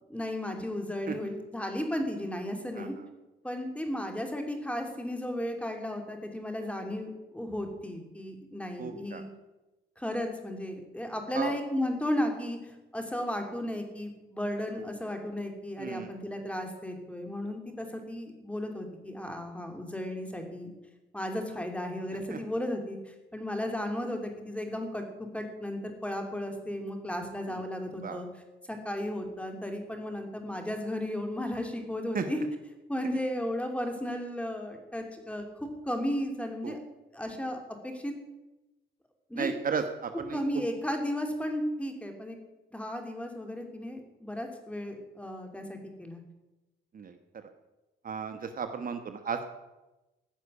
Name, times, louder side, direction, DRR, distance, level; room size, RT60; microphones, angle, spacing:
voice 1, 0.1-2.9 3.4-9.3 10.0-12.6 12.9-20.7 21.1-25.0 25.3-28.3 28.7-32.4 32.9-36.8 37.1-38.1 39.3-39.5 40.3-42.4 42.7-46.2, left 1 dB, 5° left, 4 dB, 2.8 m, -34 dB
voice 2, 8.8-9.2 11.3-11.5 15.8-16.1 22.3-22.4 28.0-28.2 32.1-32.2 36.6-36.7 39.3-40.4 46.9-47.1 48.0-49.5, right 6 dB, 45° right, 7 dB, 1.2 m, -34 dB
15.0 x 6.6 x 9.8 m, 1.1 s
cardioid pair, 90°, 20 cm